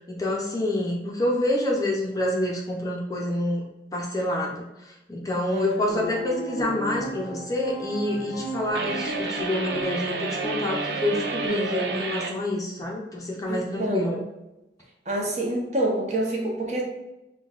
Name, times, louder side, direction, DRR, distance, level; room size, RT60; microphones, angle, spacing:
voice 1, 0.0-3.6 3.9-4.6 5.1-14.2, left 1 dB, 20° left, -2 dB, 0.5 m, -27 dB
voice 2, 5.5-5.8 11.4-12.1 13.5-14.0 15.1-16.8, right 1 dB, 40° right, -2 dB, 0.9 m, -27 dB
sound 1, 5.9-11.5, equal, 75° left, 0.6 m, -35 dB
sound 2, 8.7-12.4, right 4 dB, 70° right, 0.4 m, -31 dB
5.8 x 2.3 x 2.4 m, 0.93 s
head